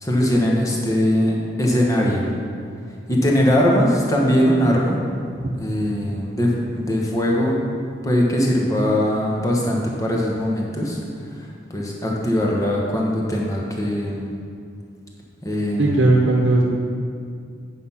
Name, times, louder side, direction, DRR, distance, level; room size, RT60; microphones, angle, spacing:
voice 1, 0.0-2.4 3.1-5.0 5.6-7.6 8.0-11.0 11.7-14.3 15.4-16.2, equal, 15° left, -2 dB, 1.2 m, -20 dB
voice 2, 15.8-16.6, right 2 dB, 65° right, -2 dB, 1.0 m, -16 dB
8.5 x 5.7 x 5.6 m, 2.3 s
head